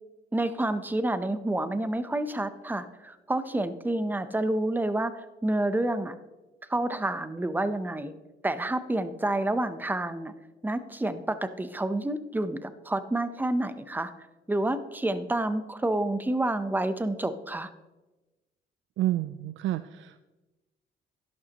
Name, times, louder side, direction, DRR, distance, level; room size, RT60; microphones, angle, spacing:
voice 1, 0.3-6.1 6.7-8.1 8.4-10.3 10.6-14.1 14.5-17.7, right 1 dB, 10° right, 12 dB, 0.7 m, -29 dB
voice 2, 19.0-20.2, right 14 dB, 75° right, 12 dB, 0.4 m, -29 dB
11.5 x 11.5 x 3.0 m, 1.1 s
cardioid pair, 90°, 20 cm